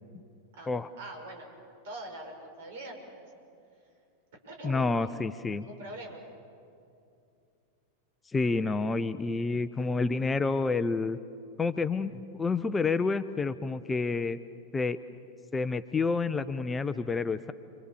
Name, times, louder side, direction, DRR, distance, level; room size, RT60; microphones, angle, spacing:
voice 1, 0.5-1.5 1.8-3.2 4.4-5.1 5.6-6.2, right 1 dB, 55° right, 2 dB, 6.3 m, -43 dB
voice 2, 4.6-5.7 8.3-11.2 11.6-14.4 14.7-15.0 15.5-17.5, left 4 dB, 15° left, 12 dB, 0.7 m, -29 dB
29.0 x 24.5 x 7.2 m, 2.6 s
figure-of-eight pair, 90°, 0 cm